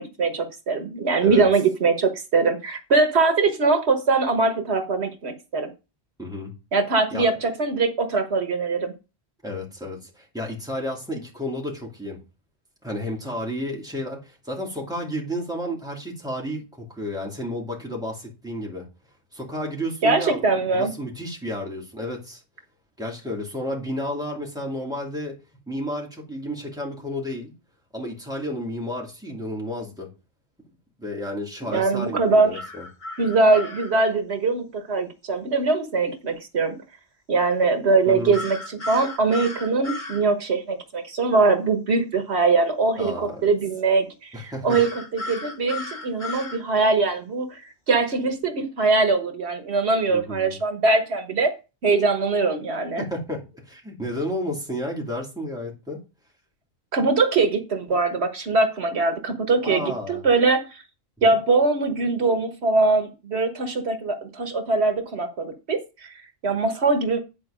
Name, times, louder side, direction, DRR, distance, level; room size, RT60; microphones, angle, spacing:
voice 1, 0.0-5.7 6.7-8.9 20.0-20.9 31.7-32.6 33.2-36.7 37.3-47.6 47.9-51.5 51.8-53.0 56.9-60.8 61.2-66.1 66.4-67.2, right 3 dB, 80° right, 1.5 m, -22 dB
voice 2, 6.2-6.5 7.1-7.3 9.4-12.2 12.8-18.8 19.3-20.4 20.7-22.4 23.0-25.4 25.7-27.5 27.9-30.1 31.0-32.9 38.1-38.4 43.0-43.5 44.3-44.8 50.1-50.5 53.0-56.0 59.6-60.2 61.3-61.4, equal, 5° right, 2.5 m, -31 dB
sound 1, 32.5-33.9 38.3-40.2 44.7-46.6, left 2 dB, 45° left, 2.1 m, -34 dB
9.4 x 4.6 x 5.0 m
omnidirectional pair, 1.1 m